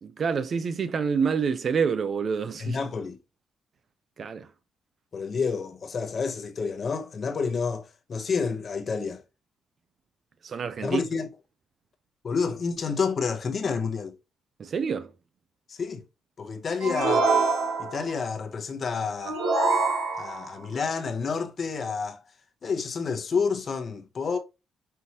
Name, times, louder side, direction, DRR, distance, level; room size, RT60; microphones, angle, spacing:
voice 1, 0.0-2.8 4.2-4.5 10.4-11.0 14.6-15.1, right 6 dB, 50° right, 0.5 m, -27 dB
voice 2, 2.6-3.2 5.1-9.2 10.8-11.3 12.2-14.2 15.7-16.0 16.4-17.3 17.8-19.4 20.1-22.2 22.6-24.4, left 5 dB, 45° left, 0.9 m, -29 dB
sound 1, 16.8-18.1 19.2-20.5, right 3 dB, 85° right, 1.6 m, -25 dB
5.6 x 2.7 x 2.9 m
cardioid pair, 90°, 0 cm